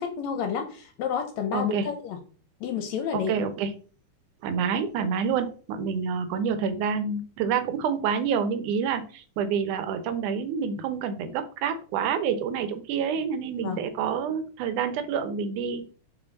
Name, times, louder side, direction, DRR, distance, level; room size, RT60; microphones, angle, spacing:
voice 1, 0.0-2.2 2.6-3.3 13.6-13.8, left 7 dB, 75° left, 6 dB, 1.9 m, -30 dB
voice 2, 1.5-1.9 3.1-3.7 4.4-15.9, right 6 dB, 90° right, 10 dB, 2.3 m, -28 dB
5.7 x 4.8 x 4.0 m, 0.40 s
omnidirectional pair, 3.4 m